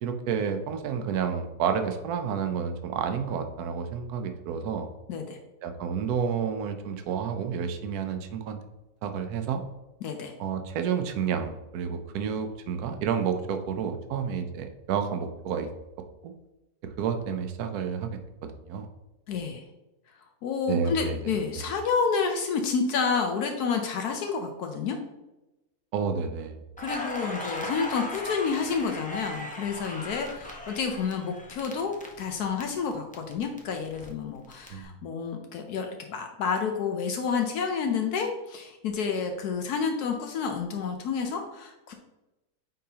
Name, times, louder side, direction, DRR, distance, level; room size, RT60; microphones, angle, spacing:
voice 1, 0.0-4.9 5.6-8.6 9.0-9.6 10.4-15.7 16.2-16.3 16.8-18.1 18.4-18.9 20.7-21.3 25.9-26.6 34.7-34.9, right 7 dB, 75° right, 7 dB, 1.1 m, -30 dB
voice 2, 10.0-10.3 19.3-19.6 20.4-25.0 26.8-41.9, left 5 dB, 75° left, 4 dB, 1.2 m, -29 dB
Crackle, 26.8-32.6 32.9-34.7, left 1 dB, 10° left, 0.3 m, -38 dB
9.3 x 3.8 x 2.8 m, 1.0 s
omnidirectional pair, 1.7 m